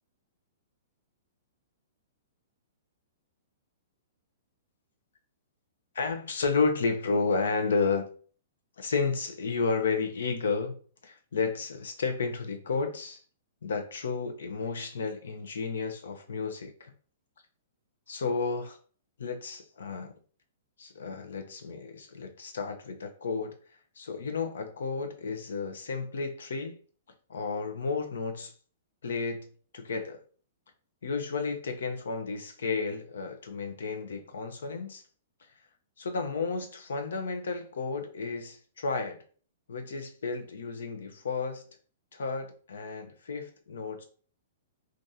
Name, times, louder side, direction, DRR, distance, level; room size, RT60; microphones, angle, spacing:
voice 1, 5.9-8.1 8.8-10.8 11.0-13.2 13.6-16.9 18.1-18.8 19.2-20.1 20.8-23.6 24.0-26.8 27.3-28.5 29.0-29.5 29.7-30.2 31.0-35.0 36.0-39.2 39.7-41.6 42.1-44.0, left 4 dB, 85° left, 0.7 m, -32 dB
3.4 x 2.5 x 2.7 m
hypercardioid pair, 150°, 0 cm